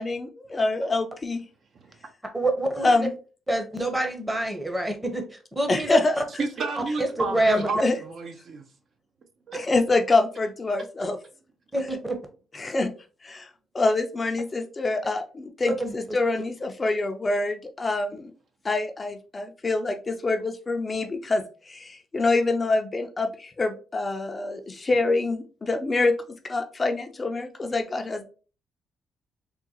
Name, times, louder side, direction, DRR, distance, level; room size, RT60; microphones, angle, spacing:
voice 1, 0.0-1.4 2.8-3.1 5.7-6.2 7.8-7.9 9.7-11.2 11.8-11.9 12.5-12.9 13.2-13.5 13.7-18.3 18.6-26.2 26.4-28.3, left 2 dB, 30° left, 0.4 m, -25 dB
voice 2, 1.7-2.1 6.4-8.7 9.5-9.6, right 3 dB, 55° right, 0.6 m, -31 dB
voice 3, 2.3-2.9 3.5-5.2 5.6-6.0 7.0-7.7 11.7-12.2 15.8-15.9, right 1 dB, 10° right, 0.8 m, -26 dB
3.6 x 2.2 x 2.8 m
cardioid pair, 90°, 0 cm